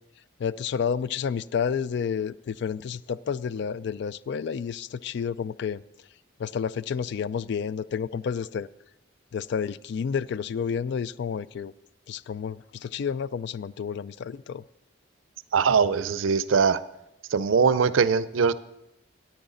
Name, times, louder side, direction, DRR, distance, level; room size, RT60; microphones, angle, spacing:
voice 1, 0.4-5.8 6.4-8.7 9.3-11.7 12.1-14.6, left 7 dB, 60° left, 19 dB, 0.3 m, -30 dB
voice 2, 15.5-16.8 17.3-18.5, right 5 dB, 85° right, 16 dB, 0.5 m, -21 dB
14.0 x 9.6 x 3.9 m, 0.85 s
head